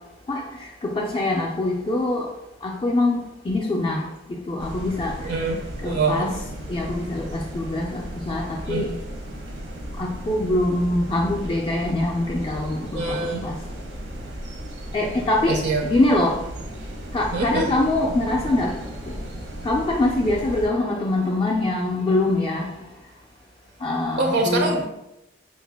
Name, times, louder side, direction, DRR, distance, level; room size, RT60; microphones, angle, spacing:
voice 1, 0.8-2.3 2.6-3.2 3.5-5.1 5.8-6.3 6.7-8.9 10.0-13.6 14.9-16.3 17.1-18.7 19.6-22.7 23.8-24.8, left 2 dB, 30° left, -2 dB, 0.3 m, -24 dB
sound 1, 4.6-20.7, right 1 dB, 90° right, 0.8 m, -35 dB
voice 2, 5.2-6.3 8.6-8.9 12.9-13.5 15.5-15.8 17.3-17.7 24.2-24.8, right 3 dB, 65° right, 2 dB, 0.4 m, -24 dB
3.7 x 2.1 x 3.4 m, 0.87 s
head